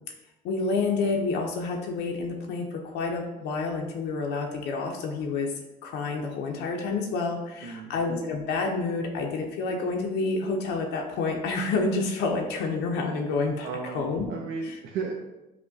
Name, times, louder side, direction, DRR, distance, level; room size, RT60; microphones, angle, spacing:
voice 1, 0.4-2.6 2.9-5.5 5.8-14.3 14.6-14.8, left 3 dB, 85° left, 1 dB, 0.5 m, -29 dB
voice 2, 7.6-7.9 13.6-15.1, right 5 dB, 85° right, 0 dB, 0.5 m, -34 dB
5.7 x 2.1 x 2.6 m, 1.0 s
cardioid pair, 110°, 17 cm